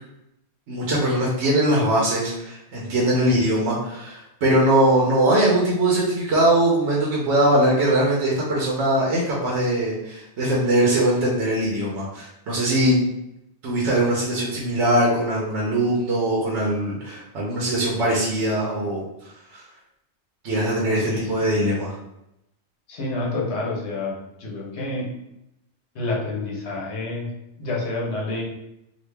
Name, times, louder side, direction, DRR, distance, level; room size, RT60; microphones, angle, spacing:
voice 1, 0.7-13.0 13.6-19.1 19.5-19.6 20.4-22.0, right 1 dB, 80° right, -4 dB, 1.0 m, -21 dB
voice 2, 20.8-21.5 22.9-24.1 24.4-25.1 25.9-27.3 27.6-28.4, left 2 dB, 70° left, -3 dB, 1.2 m, -28 dB
3.0 x 2.5 x 3.3 m, 0.86 s
omnidirectional pair, 1.2 m